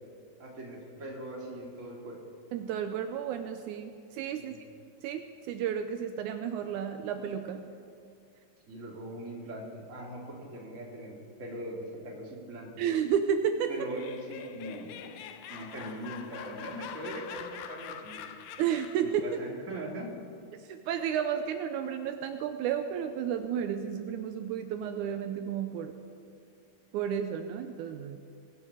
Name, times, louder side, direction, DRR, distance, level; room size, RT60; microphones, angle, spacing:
voice 1, 0.4-2.2 4.4-4.6 8.7-12.7 13.7-15.2 15.5-18.3 19.0-20.1, right 1 dB, 25° right, -2 dB, 1.9 m, -41 dB
voice 2, 2.5-4.5 5.0-7.6 12.8-13.7 18.6-19.2 20.7-26.1 26.9-28.2, right 8 dB, 90° right, 7 dB, 1.7 m, -32 dB
Laughter, 13.7-19.1, left 8 dB, 85° left, 2.6 m, -44 dB
22.5 x 9.0 x 5.0 m, 2.4 s
omnidirectional pair, 4.2 m